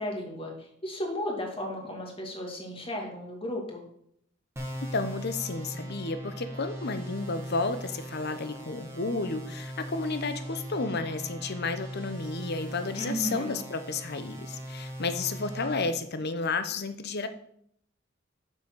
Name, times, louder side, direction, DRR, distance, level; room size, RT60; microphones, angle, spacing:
voice 1, 0.0-3.8 13.0-13.6, equal, 30° left, 1 dB, 2.3 m, -35 dB
sound 1, 4.6-15.9, equal, 15° right, 1.7 m, -39 dB
voice 2, 4.9-17.3, left 3 dB, 55° left, 10 dB, 0.9 m, -32 dB
7.0 x 6.4 x 6.2 m, 0.69 s
head